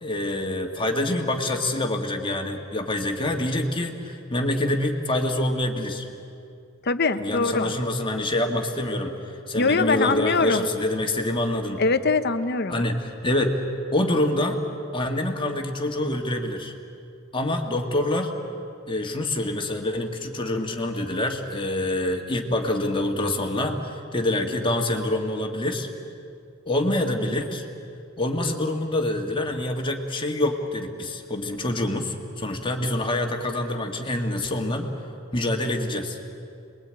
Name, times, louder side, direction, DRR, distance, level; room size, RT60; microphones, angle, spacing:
voice 1, 0.0-6.1 7.2-9.1 9.5-11.8 12.7-13.6 13.9-14.6 14.9-16.7 17.3-18.3 18.9-25.9 26.7-27.7 28.2-34.9 35.3-36.2, left 1 dB, 25° left, 2 dB, 1.9 m, -26 dB
voice 2, 6.9-7.7 9.6-10.6 11.8-12.8, left 3 dB, 55° left, 10 dB, 1.1 m, -23 dB
27.5 x 21.5 x 8.9 m, 2.5 s
head